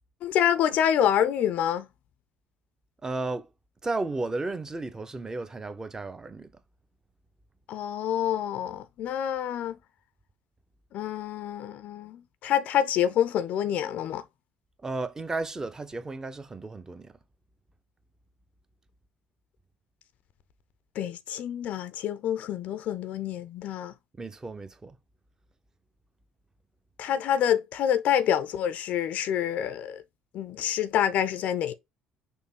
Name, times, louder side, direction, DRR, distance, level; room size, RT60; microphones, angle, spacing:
voice 1, 0.2-1.9 7.7-9.8 10.9-14.2 21.0-23.9 27.0-30.0 30.3-31.7, left 10 dB, 50° left, 0.5 m, -27 dB
voice 2, 3.0-3.5 3.8-6.5 14.8-17.1 24.2-25.0, right 3 dB, 20° right, 0.7 m, -33 dB
6.3 x 2.7 x 2.8 m
figure-of-eight pair, 55°, 3 cm